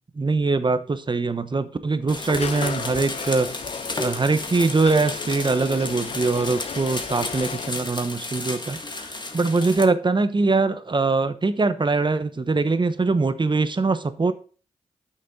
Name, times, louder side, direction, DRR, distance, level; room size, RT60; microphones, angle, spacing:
voice 1, 0.1-3.5 4.0-14.3, right 3 dB, 40° right, 12 dB, 1.0 m, -22 dB
sound 1, 2.1-9.9, left 2 dB, 35° left, 1.7 m, -33 dB
sound 2, 2.4-7.7, left 7 dB, 55° left, 0.4 m, -36 dB
8.9 x 6.4 x 3.7 m, 0.38 s
cardioid pair, 45°, 13 cm